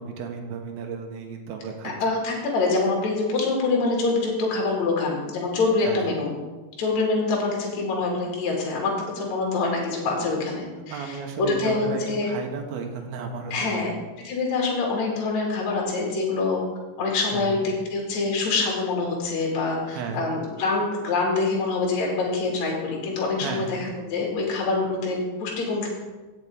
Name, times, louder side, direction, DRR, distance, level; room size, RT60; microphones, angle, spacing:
voice 1, 0.0-1.9 5.8-6.1 10.8-14.0 17.3-17.7 19.9-20.3 23.4-23.9, right 5 dB, 75° right, 3 dB, 2.2 m, -34 dB
voice 2, 2.0-6.3 6.8-12.3 13.5-13.9 14.2-16.6 17.0-25.9, left 3 dB, 45° left, -2 dB, 2.7 m, -25 dB
17.0 x 7.3 x 3.6 m, 1.2 s
omnidirectional pair, 5.9 m